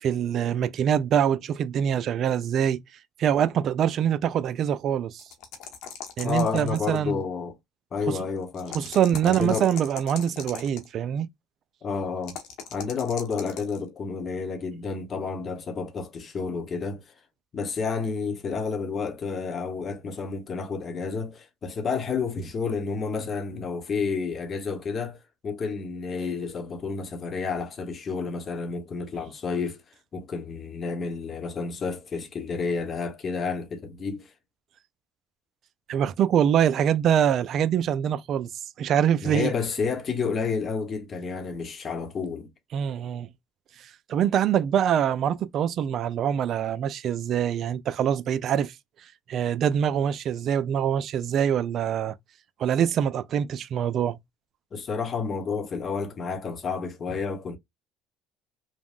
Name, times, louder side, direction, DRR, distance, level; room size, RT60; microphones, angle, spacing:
voice 1, 0.0-2.8 3.2-5.2 6.2-7.2 8.1-8.2 8.7-11.3 35.9-38.5 38.8-39.5 42.7-43.3 43.8-48.7 49.3-52.2 52.6-54.2, right 9 dB, 55° right, 0.4 m, -24 dB
sound 1, 5.2-7.1 8.5-10.9 12.2-13.8, left 7 dB, 70° left, 0.9 m, -40 dB
voice 2, 6.2-7.6 7.9-8.9 9.2-9.7 11.8-12.4 12.7-17.0 17.5-25.2 25.4-29.8 30.1-34.3 39.2-42.5 54.7-57.6, left 5 dB, 40° left, 0.9 m, -30 dB
3.4 x 2.1 x 2.3 m
supercardioid pair, 85°, 0 cm